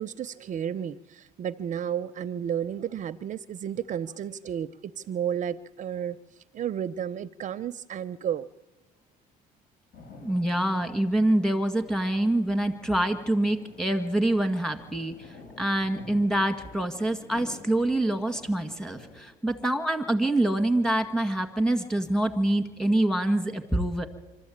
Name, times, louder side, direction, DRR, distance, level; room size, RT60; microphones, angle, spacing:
voice 1, 0.0-6.2 6.5-8.5, right 9 dB, 45° right, 13 dB, 0.6 m, -32 dB
sound 1, 9.9-19.2, left 3 dB, 55° left, 6.0 m, -49 dB
voice 2, 10.2-24.1, right 1 dB, 5° left, 8 dB, 2.0 m, -26 dB
25.5 x 13.5 x 8.7 m, 1.3 s
cardioid pair, 110°, 17 cm